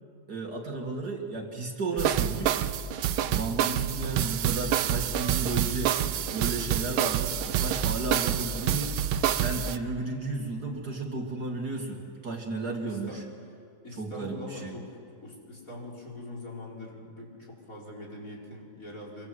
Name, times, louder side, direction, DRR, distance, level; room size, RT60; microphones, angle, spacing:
voice 1, 0.3-2.6 3.2-8.9 9.3-13.2 14.0-14.7, right 3 dB, 50° right, 1 dB, 2.9 m, -33 dB
sound 1, 2.0-9.8, right 10 dB, 90° right, 1.7 m, -27 dB
voice 2, 12.8-13.2 13.8-19.3, left 2 dB, 40° left, -2 dB, 5.4 m, -43 dB
26.0 x 24.0 x 8.0 m, 2.3 s
omnidirectional pair, 2.2 m